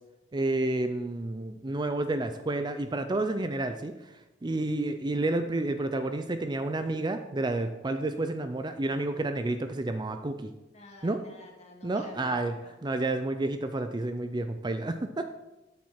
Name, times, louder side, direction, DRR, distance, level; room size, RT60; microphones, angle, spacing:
voice 1, 0.3-4.1 4.4-10.5 11.0-11.2 11.8-12.6 12.8-15.3, right 2 dB, 25° right, 8 dB, 0.5 m, -30 dB
voice 2, 10.7-12.8, left 2 dB, 35° left, 0 dB, 2.4 m, -50 dB
13.0 x 7.6 x 4.4 m, 1.0 s
head